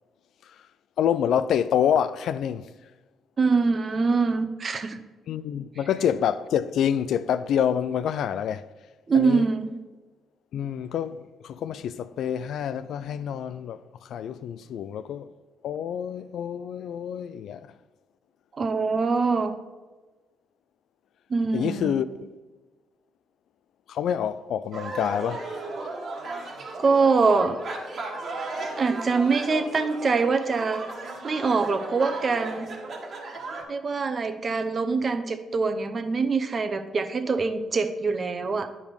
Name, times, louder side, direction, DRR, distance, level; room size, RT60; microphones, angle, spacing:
voice 1, 1.0-2.7 5.3-8.7 9.1-9.5 10.5-15.3 15.6-17.7 21.5-22.1 23.9-25.6, left 9 dB, 75° left, 0.3 m, -27 dB
voice 2, 3.4-5.0 9.1-9.8 18.6-19.5 21.3-21.9 26.8-27.6 28.8-30.9 31.2-32.7 33.7-38.7, right 4 dB, 40° right, 0.8 m, -24 dB
sound 1, 24.7-33.6, right 3 dB, 55° right, 1.6 m, -35 dB
9.6 x 5.0 x 5.2 m
cardioid pair, 90°, 0 cm